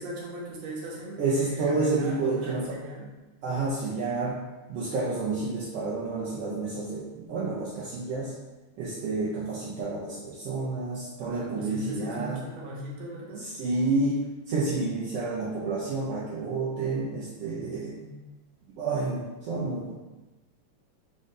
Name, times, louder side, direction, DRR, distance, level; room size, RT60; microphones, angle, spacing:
voice 1, 0.0-3.1 11.2-13.5 17.9-18.1, right 1 dB, 70° right, -4 dB, 1.9 m, -39 dB
voice 2, 1.2-2.8 3.4-4.3 4.7-8.3 8.8-12.4 13.3-14.2 14.5-17.9 18.8-19.9, right 3 dB, 90° right, -6 dB, 1.3 m, -29 dB
5.1 x 2.6 x 3.7 m, 1.1 s
omnidirectional pair, 3.5 m